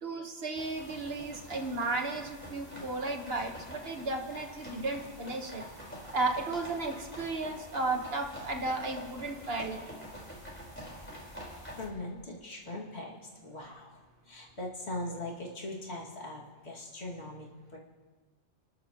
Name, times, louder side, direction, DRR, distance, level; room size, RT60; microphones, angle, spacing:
voice 1, 0.0-5.6 6.1-9.8, right 3 dB, 60° right, 3 dB, 1.6 m, -34 dB
sound 1, 0.5-11.9, equal, 10° left, 4.3 m, -46 dB
voice 2, 11.7-17.8, left 1 dB, 70° left, -3 dB, 2.6 m, -41 dB
30.0 x 12.0 x 3.0 m, 1.3 s
omnidirectional pair, 1.2 m